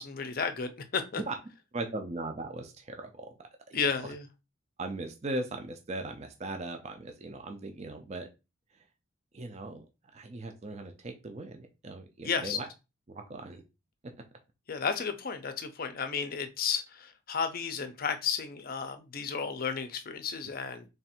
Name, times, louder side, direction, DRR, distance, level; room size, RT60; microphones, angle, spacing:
voice 1, 0.0-1.2 3.7-4.2 12.2-12.6 14.7-20.9, left 6 dB, 45° left, 8 dB, 0.5 m, -33 dB
voice 2, 1.7-4.1 4.8-8.3 9.3-9.9 10.1-12.7 13.1-13.6, right 2 dB, 30° right, 5 dB, 0.4 m, -39 dB
3.4 x 2.5 x 4.2 m, 0.27 s
head